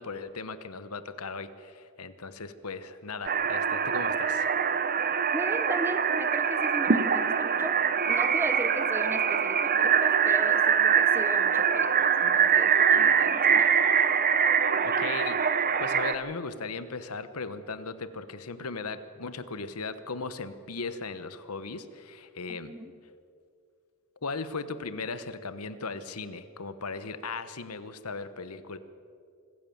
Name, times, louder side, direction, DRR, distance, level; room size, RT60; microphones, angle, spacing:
voice 1, 0.0-4.5 14.8-15.4 15.8-22.7 24.2-28.8, left 4 dB, 75° left, 12 dB, 1.1 m, -37 dB
sound 1, 3.3-16.1, right 7 dB, 40° right, 0.9 m, -24 dB
voice 2, 5.3-7.8 8.1-13.8 22.5-22.9, right 1 dB, 10° right, 10 dB, 0.9 m, -37 dB
25.5 x 15.0 x 7.2 m, 2.4 s
head